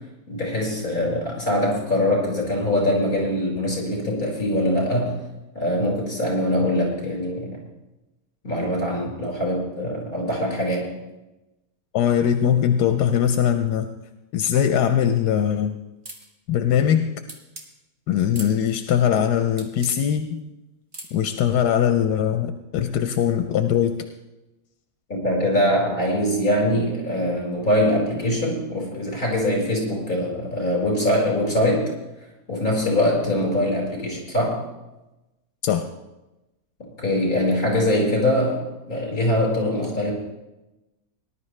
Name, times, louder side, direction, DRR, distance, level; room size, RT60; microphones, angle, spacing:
voice 1, 0.3-5.1 5.6-7.6 8.4-10.9 25.1-31.9 32.5-34.6 37.0-40.1, left 1 dB, 35° left, -3 dB, 5.3 m, -23 dB
voice 2, 11.9-13.9 14.3-15.7 16.5-17.1 18.1-20.4 21.1-23.9 35.6-35.9, left 9 dB, 85° left, 8 dB, 1.2 m, -21 dB
sound 1, 16.1-16.3 17.3-17.7 18.3-18.6 19.6-20.0 20.9-21.2, right 2 dB, 30° right, 1.7 m, -39 dB
19.5 x 11.5 x 3.2 m, 1.0 s
omnidirectional pair, 1.7 m